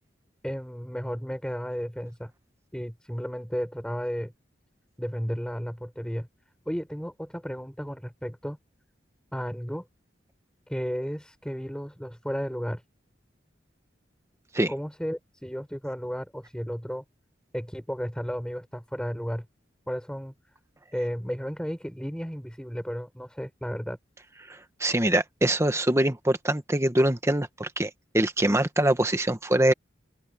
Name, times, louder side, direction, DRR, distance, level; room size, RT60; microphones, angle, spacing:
voice 1, 0.4-2.3 2.7-4.3 5.0-6.3 6.6-8.6 9.3-9.8 10.7-12.8 14.7-17.0 17.5-19.4 19.9-20.3 20.9-24.0, equal, 5° left, 6.8 m, -33 dB
voice 2, 24.5-29.7, right 1 dB, 15° right, 1.3 m, -24 dB
open air
head